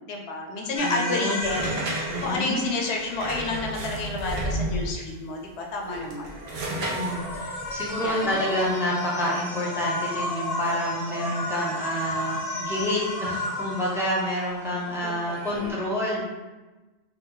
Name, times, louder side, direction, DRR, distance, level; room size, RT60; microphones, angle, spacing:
voice 1, 0.0-6.3 8.0-8.4 15.0-15.7, left 3 dB, 85° left, 1 dB, 0.9 m, -30 dB
sound 1, 0.7-4.0 6.3-15.7, left 1 dB, 50° left, 0.5 m, -33 dB
voice 2, 0.8-1.4 2.1-2.7 6.7-16.3, equal, 5° right, -5 dB, 0.5 m, -28 dB
sound 2, 1.4-5.1 5.8-8.7, right 1 dB, 75° right, 0.9 m, -32 dB
2.9 x 2.3 x 3.7 m, 1.1 s
omnidirectional pair, 1.1 m